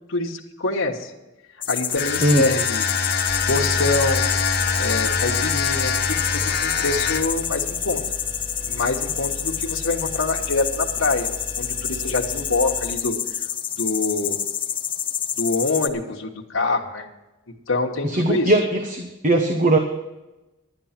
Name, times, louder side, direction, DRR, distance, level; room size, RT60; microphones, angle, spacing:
voice 1, 0.1-1.1 1.7-2.9 3.5-4.3 4.8-8.0 8.6-11.3 11.6-13.4 13.8-14.4 15.4-17.1 17.7-18.5, left 3 dB, 75° left, 0 dB, 1.3 m, -25 dB
sound 1, 1.6-15.9, left 9 dB, 25° left, 0.6 m, -28 dB
sound 2, 1.9-7.4, left 5 dB, 45° left, 1.3 m, -24 dB
sound 3, 3.3-12.9, equal, 15° right, 2.4 m, -37 dB
voice 2, 18.0-19.8, right 1 dB, 40° right, 5 dB, 1.0 m, -19 dB
11.5 x 10.0 x 5.8 m, 1.0 s
head